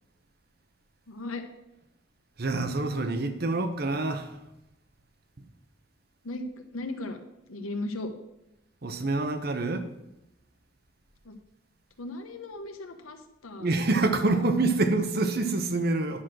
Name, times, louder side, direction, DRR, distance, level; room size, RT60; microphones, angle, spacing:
voice 1, 1.1-1.4 6.2-7.2 7.5-8.1 11.2-11.3 12.0-14.0, left 2 dB, 90° left, 1.3 m, -37 dB
voice 2, 2.4-4.3 8.8-9.9 13.6-16.2, right 2 dB, 50° right, 0.9 m, -26 dB
10.0 x 6.1 x 6.3 m
head